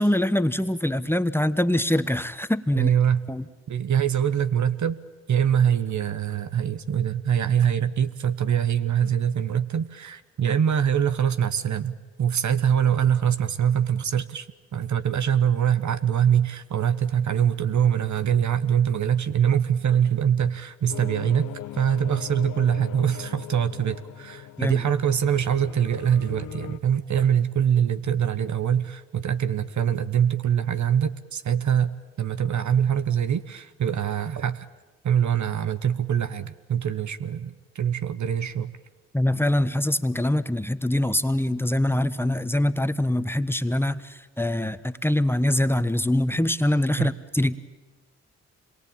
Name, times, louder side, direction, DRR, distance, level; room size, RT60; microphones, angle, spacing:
voice 1, 0.0-2.9 3.3-3.4 24.6-24.8 39.1-47.6, left 1 dB, 5° left, 12 dB, 1.4 m, -24 dB
voice 2, 2.7-3.2 3.7-5.0 5.3-14.5 14.7-34.7 35.0-38.7 47.0-47.1, right 8 dB, 60° right, 12 dB, 1.2 m, -23 dB
sound 1, 20.9-26.8, left 12 dB, 70° left, 1.0 m, -40 dB
26.5 x 22.5 x 8.9 m, 1.2 s
hypercardioid pair, 40°, 33 cm